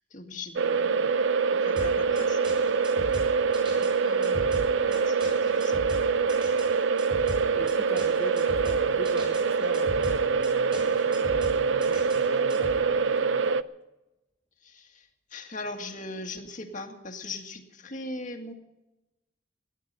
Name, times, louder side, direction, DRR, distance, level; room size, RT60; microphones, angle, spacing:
voice 1, 0.1-1.2 1.5-2.5 3.8-5.9 14.6-18.5, left 2 dB, 40° left, 4 dB, 2.0 m, -40 dB
sound 1, 0.6-13.6, right 5 dB, 75° right, 0.6 m, -25 dB
sound 2, 1.8-12.8, equal, 25° right, 6.9 m, -39 dB
voice 2, 7.5-13.7, left 1 dB, 10° left, -1 dB, 1.3 m, -42 dB
18.5 x 11.0 x 6.7 m, 0.97 s
head